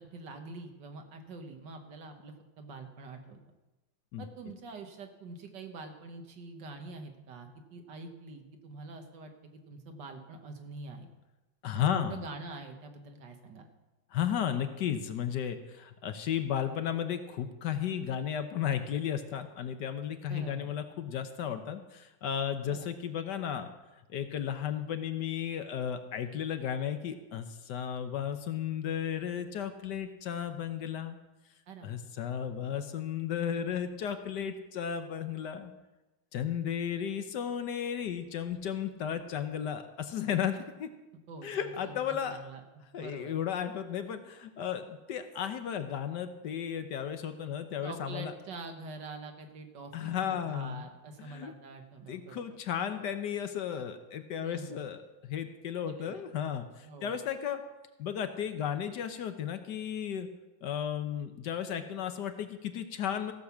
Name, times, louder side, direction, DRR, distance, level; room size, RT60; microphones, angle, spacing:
voice 1, 0.0-3.4 4.2-9.3 9.7-11.1 11.7-13.7 20.3-20.7 22.6-22.9 31.7-32.0 40.6-40.7 41.3-43.4 47.8-52.5 54.4-54.8 55.8-56.2 56.8-57.2, right 3 dB, 65° right, 5 dB, 1.9 m, -45 dB
voice 2, 11.6-12.2 14.1-23.7 24.1-31.2 31.8-35.7 36.3-40.9 41.4-42.4 42.9-48.3 49.9-50.9 51.2-51.5 52.1-57.6 58.0-60.3 60.6-63.3, left 9 dB, 65° left, 9 dB, 1.3 m, -34 dB
15.0 x 6.5 x 7.1 m, 1.1 s
omnidirectional pair, 2.1 m